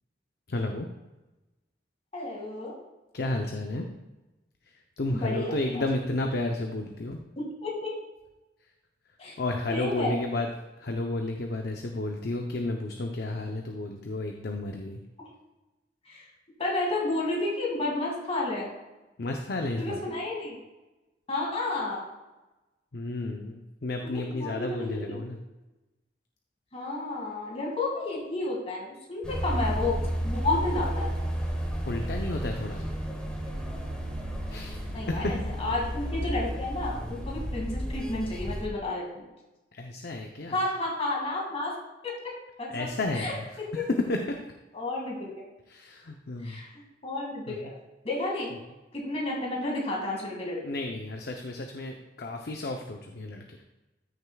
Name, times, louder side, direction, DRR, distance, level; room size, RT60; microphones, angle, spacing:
voice 1, 0.5-0.9 3.1-3.9 4.7-7.2 9.4-10.5 10.8-15.0 19.2-20.0 22.9-25.4 31.9-32.9 34.5-34.8 35.1-35.3 39.7-40.6 42.7-43.5 43.7-44.4 45.7-46.6 47.5-47.7 50.6-53.6, left 2 dB, 60° left, 3 dB, 0.7 m, -32 dB
voice 2, 2.1-2.7 5.1-5.8 7.4-7.9 9.2-9.4 9.7-10.2 15.2-15.3 16.1-16.3 16.6-18.7 19.8-20.6 21.3-22.0 24.0-25.2 26.7-31.1 34.9-39.3 40.5-41.8 42.0-42.3 42.6-42.9 43.1-43.8 44.7-45.3 46.4-46.7 47.0-47.7 48.0-48.5 48.9-50.6, left 2 dB, 35° left, -3 dB, 2.0 m, -31 dB
sound 1, 29.2-38.7, equal, 5° left, 1.2 m, -32 dB
13.5 x 6.6 x 2.3 m, 1.1 s
head